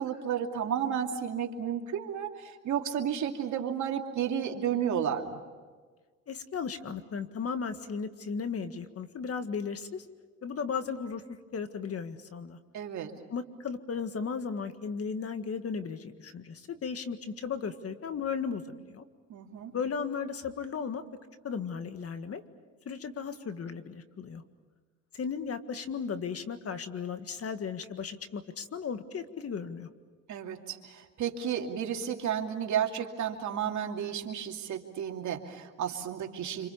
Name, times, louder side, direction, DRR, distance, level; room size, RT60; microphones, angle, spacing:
voice 1, 0.0-5.4 12.7-13.1 19.3-19.7 30.3-36.7, right 8 dB, 70° right, 2 dB, 2.7 m, -32 dB
voice 2, 6.3-10.1 10.4-11.2 11.5-12.6 13.3-19.1 19.7-21.0 21.4-22.4 22.9-24.4 25.1-29.9, left 6 dB, 50° left, 9 dB, 1.8 m, -35 dB
27.0 x 26.0 x 7.1 m, 1.4 s
cardioid pair, 90°, 30 cm